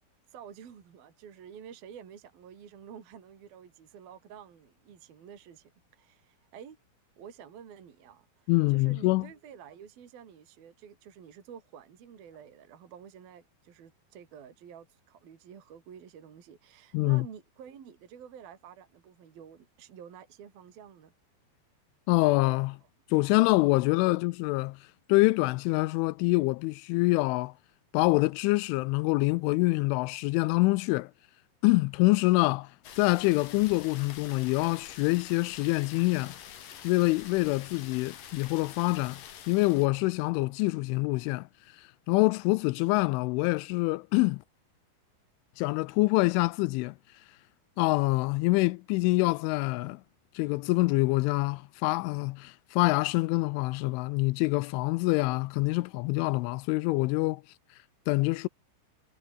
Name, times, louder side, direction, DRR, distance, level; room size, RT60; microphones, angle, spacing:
voice 1, 0.3-6.8 7.2-21.1, right 8 dB, 50° right, 4.6 m, -50 dB
voice 2, 8.5-9.3 16.9-17.2 22.1-22.8 23.1-24.8 25.1-27.5 27.9-31.1 31.6-32.7 33.0-36.4 36.8-39.2 39.5-41.5 42.1-44.4 45.6-47.0 47.8-50.0 50.4-57.4 58.1-58.5, left 22 dB, 85° left, 2.9 m, -25 dB
sound 1, 32.8-39.9, left 10 dB, 55° left, 3.1 m, -46 dB
omnidirectional pair, 5.8 m